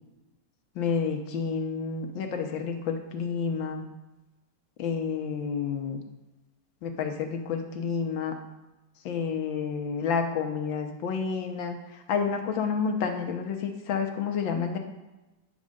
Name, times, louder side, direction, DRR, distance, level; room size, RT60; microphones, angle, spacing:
voice 1, 0.7-3.8 4.8-6.0 6.8-8.3 9.0-14.8, left 6 dB, 85° left, 4 dB, 1.8 m, -30 dB
9.8 x 4.8 x 6.3 m, 1.1 s
omnidirectional pair, 2.0 m